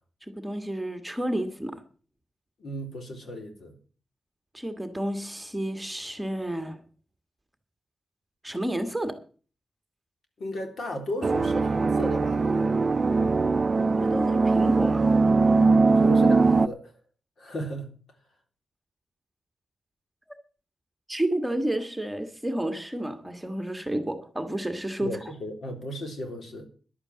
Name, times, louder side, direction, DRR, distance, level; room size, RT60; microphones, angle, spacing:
voice 1, 0.2-1.8 4.5-6.8 8.4-9.2 14.0-15.1 21.1-25.1, right 1 dB, 10° right, 1.6 m, -30 dB
voice 2, 2.6-3.7 10.4-12.6 15.9-16.8 17.4-17.9 25.0-26.7, equal, 65° left, 3.5 m, -35 dB
sound 1, 11.2-16.7, right 3 dB, 40° right, 0.5 m, -21 dB
11.5 x 8.8 x 7.5 m
cardioid pair, 100°, 0 cm